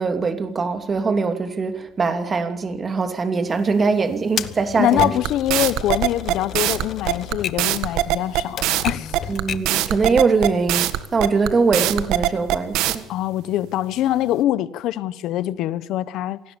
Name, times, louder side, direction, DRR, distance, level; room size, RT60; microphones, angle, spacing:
voice 1, 0.0-5.1 9.3-13.1, right 4 dB, 25° right, 2.8 m, -22 dB
Typewriter, 4.4-9.8, left 9 dB, 45° left, 1.1 m, -33 dB
voice 2, 4.8-9.2 9.6-9.9 13.1-16.6, left 13 dB, 65° left, 1.3 m, -24 dB
sound 1, 5.0-13.0, right 14 dB, 75° right, 1.7 m, -21 dB
27.0 x 18.5 x 7.2 m
cardioid pair, 130°, 0 cm